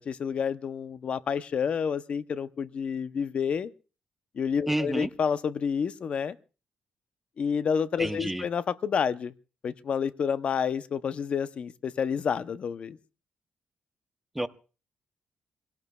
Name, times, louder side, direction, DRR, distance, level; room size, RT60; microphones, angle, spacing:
voice 1, 0.0-3.7 4.4-6.4 7.4-9.3 9.6-13.0, left 7 dB, 50° left, 14 dB, 0.6 m, -29 dB
voice 2, 4.7-5.1 8.0-8.5 14.3-14.5, right 1 dB, 5° right, 10 dB, 0.7 m, -29 dB
27.0 x 17.5 x 2.3 m, 0.35 s
cardioid pair, 135°, 3 cm